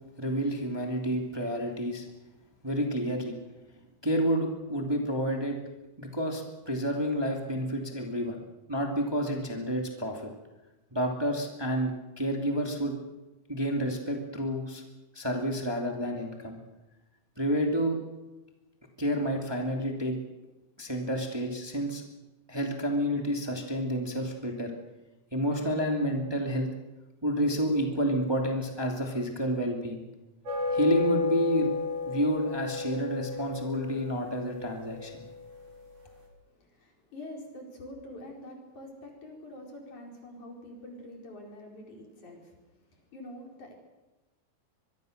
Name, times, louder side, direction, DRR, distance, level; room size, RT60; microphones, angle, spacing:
voice 1, 0.2-2.1 2.6-3.3 4.0-5.6 6.0-8.4 8.7-10.3 10.9-11.9 12.2-12.9 13.5-14.8 15.1-16.6 17.4-18.0 19.0-20.1 20.8-22.0 22.5-24.7 25.3-26.7 27.2-30.0 30.7-31.7 32.1-35.2, equal, 10° right, 1 dB, 2.4 m, -29 dB
sound 1, 30.4-36.0, left 4 dB, 80° right, 6.2 m, -33 dB
voice 2, 36.5-43.8, left 1 dB, 75° left, 1 dB, 6.0 m, -46 dB
24.5 x 22.5 x 6.6 m, 1.1 s
omnidirectional pair, 3.5 m